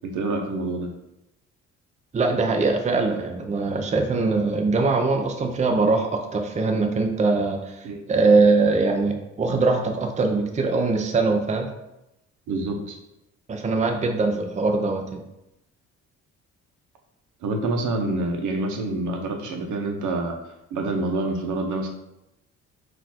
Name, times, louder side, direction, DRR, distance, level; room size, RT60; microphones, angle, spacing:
voice 1, 0.0-0.9 7.8-8.0 12.5-13.0 17.4-20.4 20.7-21.9, right 2 dB, 80° right, 3 dB, 0.8 m, -27 dB
voice 2, 2.1-11.7 13.5-15.2, right 3 dB, 25° right, 4 dB, 0.5 m, -22 dB
4.0 x 2.5 x 4.2 m, 0.88 s
cardioid pair, 90°, 30 cm